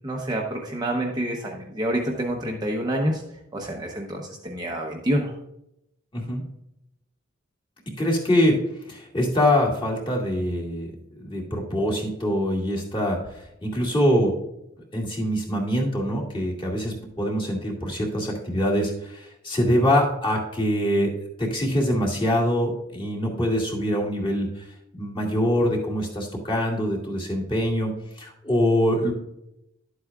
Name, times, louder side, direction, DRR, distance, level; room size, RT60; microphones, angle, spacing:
voice 1, 0.0-3.2 3.5-5.3, right 1 dB, 20° right, -1 dB, 0.8 m, -27 dB
voice 2, 8.0-8.6 8.9-10.9 11.2-13.2 13.6-14.4 14.9-21.1 21.4-24.5 25.0-27.9 28.2-29.1, equal, 25° left, -3 dB, 2.1 m, -24 dB
11.0 x 8.0 x 2.4 m, 0.82 s
head